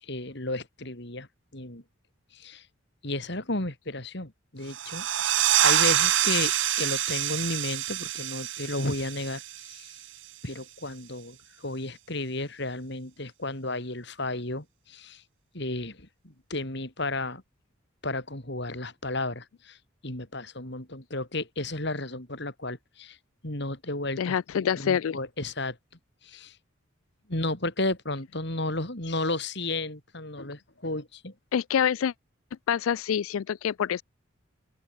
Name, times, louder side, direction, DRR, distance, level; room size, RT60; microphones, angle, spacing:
voice 1, 0.0-1.3 1.5-1.8 2.3-2.7 3.0-5.1 5.6-9.9 10.4-15.2 15.5-17.4 18.0-19.8 20.0-23.2 23.4-25.8 26.2-26.6 27.3-31.3, left 2 dB, 55° left, 4.3 m, -33 dB
sound 1, 4.7-10.1, right 12 dB, 65° right, 1.0 m, -26 dB
voice 2, 24.2-25.2 31.5-32.1 32.7-34.0, left 8 dB, 85° left, 0.4 m, -26 dB
open air
head